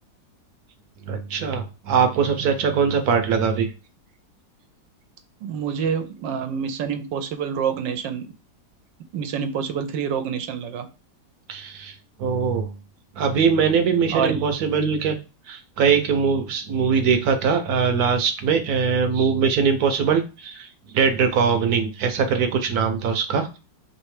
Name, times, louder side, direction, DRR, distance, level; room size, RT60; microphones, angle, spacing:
voice 1, 1.0-3.7 11.5-12.8 13.1-15.2 15.5-23.6, right 6 dB, 60° right, 7 dB, 1.2 m, -22 dB
voice 2, 5.4-8.3 9.1-10.9 14.1-14.4, right 7 dB, 80° right, 9 dB, 1.4 m, -27 dB
3.4 x 3.2 x 4.7 m, 0.31 s
omnidirectional pair, 2.0 m